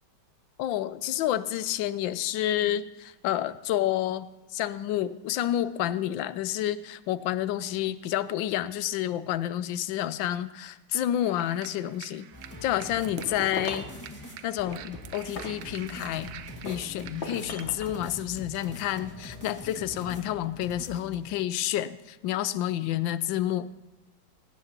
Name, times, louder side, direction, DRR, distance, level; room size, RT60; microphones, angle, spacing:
voice 1, 0.6-12.3 12.6-13.9 14.4-16.3 16.6-23.7, left 12 dB, 85° left, 15 dB, 1.3 m, -29 dB
sound 1, 11.2-17.6, right 10 dB, 75° right, 1.3 m, -47 dB
sound 2, 12.3-21.2, left 2 dB, 10° left, 2.0 m, -44 dB
sound 3, 13.0-14.0 14.7-16.2 16.7-18.0, left 3 dB, 40° left, 1.3 m, -38 dB
18.0 x 17.0 x 2.9 m, 1.1 s
omnidirectional pair, 2.0 m